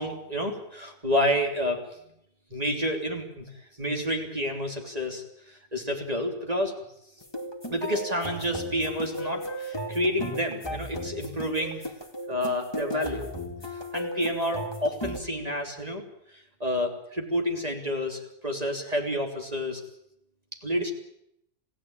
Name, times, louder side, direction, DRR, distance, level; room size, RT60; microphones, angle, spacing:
voice 1, 0.0-2.0 2.5-3.4 3.8-6.7 7.7-11.9 12.3-13.3 13.7-16.0 16.3-19.8 20.5-20.9, equal, 25° right, 3 dB, 3.3 m, -29 dB
sound 1, 7.2-15.2, equal, 15° left, 2.4 m, -35 dB
27.5 x 16.5 x 8.9 m, 0.77 s
omnidirectional pair, 1.5 m